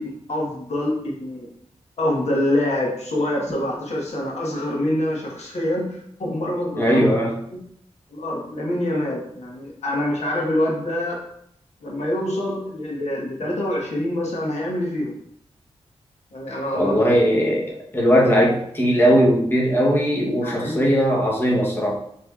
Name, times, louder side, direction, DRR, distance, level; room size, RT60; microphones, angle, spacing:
voice 1, 0.0-1.5 2.0-7.1 8.1-11.2 11.8-15.2 16.3-17.0 18.1-18.3 20.4-20.8, left 1 dB, 80° left, -3 dB, 1.3 m, -25 dB
voice 2, 6.8-7.4 16.7-22.0, equal, 20° left, -3 dB, 1.0 m, -19 dB
6.9 x 3.2 x 2.4 m, 0.71 s
wide cardioid pair, 100°, 11 cm